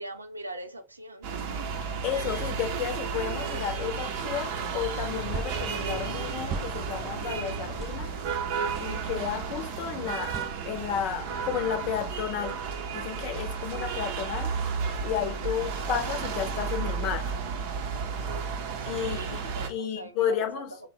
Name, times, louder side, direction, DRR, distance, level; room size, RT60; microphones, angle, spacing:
voice 1, 0.0-1.3 18.8-20.6, right 1 dB, 85° right, 0.5 m, -41 dB
sound 1, 1.2-19.7, right 5 dB, 50° right, 0.7 m, -33 dB
voice 2, 2.0-8.1 8.8-10.4 10.6-12.6 12.9-14.5 15.0-17.3 18.9-19.4 19.7-20.7, left 9 dB, 40° left, 0.8 m, -32 dB
sound 2, 4.3-4.5 5.3-5.6 6.5-6.7 7.8-8.0 8.7-8.9 10.3-10.5, right 4 dB, 20° right, 0.4 m, -36 dB
3.1 x 2.4 x 4.3 m
figure-of-eight pair, 90°, 0 cm